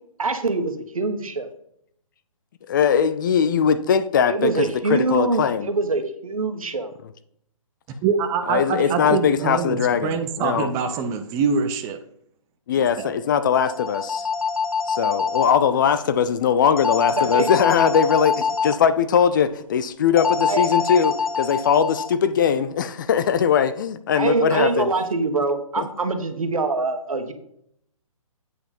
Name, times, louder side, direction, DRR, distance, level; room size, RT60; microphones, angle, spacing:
voice 1, 0.2-1.5 4.3-6.9 8.8-9.6 17.2-17.5 20.5-20.7 24.1-27.3, right 3 dB, 75° right, 7 dB, 1.5 m, -24 dB
voice 2, 2.7-5.7 8.5-10.7 12.7-14.3 14.9-24.9 25.8-25.9, left 7 dB, 35° left, 12 dB, 0.5 m, -20 dB
voice 3, 8.0-12.0 13.0-13.1, right 6 dB, 15° right, 6 dB, 0.7 m, -24 dB
sound 1, 13.5-15.5 16.8-18.8 20.2-22.1, left 5 dB, 80° left, 0.8 m, -24 dB
8.2 x 4.9 x 5.3 m, 0.70 s
figure-of-eight pair, 140°, 18 cm